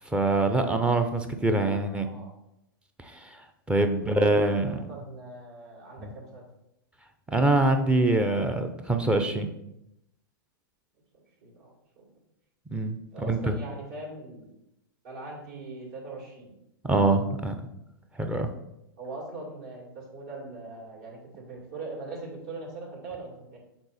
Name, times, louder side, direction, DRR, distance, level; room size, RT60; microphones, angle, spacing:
voice 1, 0.0-2.1 3.0-3.4 3.7-4.8 6.0-6.1 7.3-9.5 12.7-13.5 16.8-17.5 18.2-18.5, right 2 dB, 10° right, 7 dB, 0.7 m, -24 dB
voice 2, 1.9-2.3 4.1-6.5 11.4-12.1 13.1-14.5 15.0-16.5 19.0-23.6, right 3 dB, 55° right, -2 dB, 2.8 m, -41 dB
7.9 x 3.9 x 4.2 m, 0.83 s
figure-of-eight pair, 105°, 12 cm